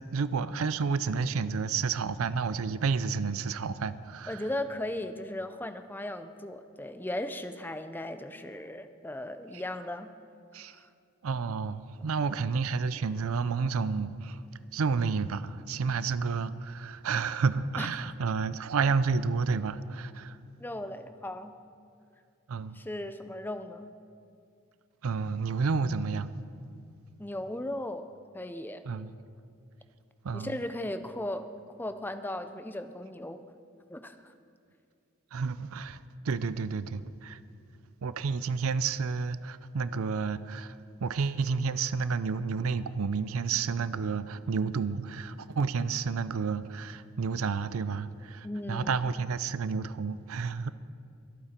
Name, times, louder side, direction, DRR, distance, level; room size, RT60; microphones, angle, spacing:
voice 1, 0.0-4.5 9.5-9.6 10.5-10.8 11.2-14.4 14.7-20.4 22.5-22.8 25.0-26.4 28.9-29.1 30.2-30.6 35.3-37.4 38.0-50.7, right 5 dB, 75° right, 0.5 m, -30 dB
voice 2, 4.3-10.1 10.7-10.8 17.8-17.9 20.6-21.5 22.7-23.9 27.2-28.1 28.3-28.8 30.3-31.5 31.8-33.5 33.9-34.2 48.4-48.9, left 1 dB, 10° left, 0.5 m, -37 dB
23.0 x 8.8 x 4.4 m
head